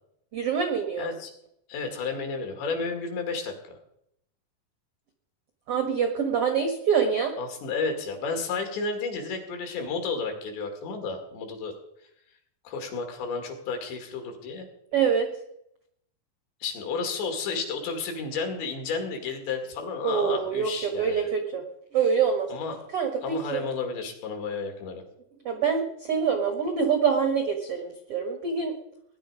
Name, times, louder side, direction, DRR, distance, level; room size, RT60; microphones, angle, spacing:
voice 1, 0.3-1.1 5.7-7.3 14.9-15.3 20.0-21.6 21.9-22.5 22.9-23.6 25.4-28.8, right 6 dB, 90° right, 5 dB, 1.3 m, -25 dB
voice 2, 1.0-1.3 1.7-3.8 7.4-11.7 12.6-14.7 16.6-21.3 22.5-22.8 23.2-25.0, left 4 dB, 90° left, 4 dB, 4.6 m, -32 dB
19.0 x 10.5 x 5.0 m, 0.76 s
omnidirectional pair, 4.9 m